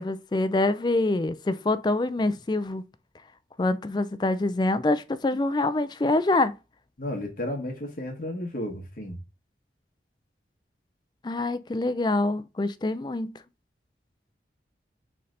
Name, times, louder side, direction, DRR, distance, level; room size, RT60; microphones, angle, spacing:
voice 1, 0.0-2.8 3.6-6.5 11.2-13.4, left 2 dB, 25° left, 0.3 m, -25 dB
voice 2, 7.0-9.2, left 1 dB, 50° left, 1.1 m, -33 dB
4.2 x 3.2 x 3.8 m
head